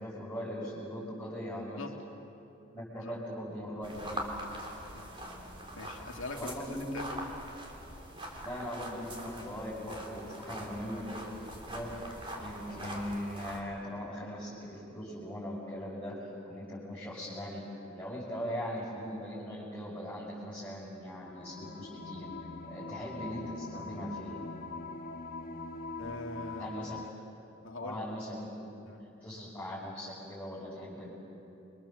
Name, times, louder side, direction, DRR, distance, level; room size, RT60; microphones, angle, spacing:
voice 1, 0.0-1.8 2.7-4.3 6.3-6.8 8.4-11.2 11.7-17.7 17.9-22.3 22.7-24.4 26.6-27.0 27.8-28.5 28.8-28.9 29.2-31.1, equal, 10° left, -9 dB, 6.1 m, -40 dB
sound 1, 3.8-13.6, right 1 dB, 25° right, 3.6 m, -43 dB
voice 2, 5.7-6.5 6.9-7.0 26.0-26.8 27.6-28.0 28.9-29.0, left 2 dB, 85° left, 3 dB, 2.2 m, -42 dB
sound 2, 21.2-27.1, left 3 dB, 50° left, 1.1 m, -43 dB
29.0 x 24.5 x 7.5 m, 2.9 s
head